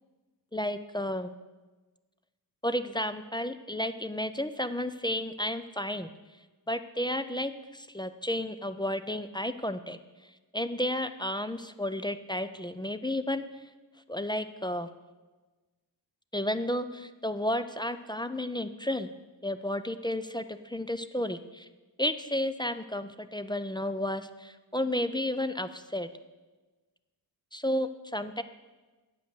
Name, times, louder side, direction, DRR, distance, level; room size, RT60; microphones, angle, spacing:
voice 1, 0.5-1.3 2.6-6.1 6.7-10.0 10.5-13.4 14.1-14.9 16.3-19.1 19.4-21.7 22.0-26.1 27.5-28.4, left 1 dB, 10° left, 11 dB, 0.3 m, -32 dB
8.8 x 7.8 x 6.9 m, 1.2 s
wide cardioid pair, 135°, 42 cm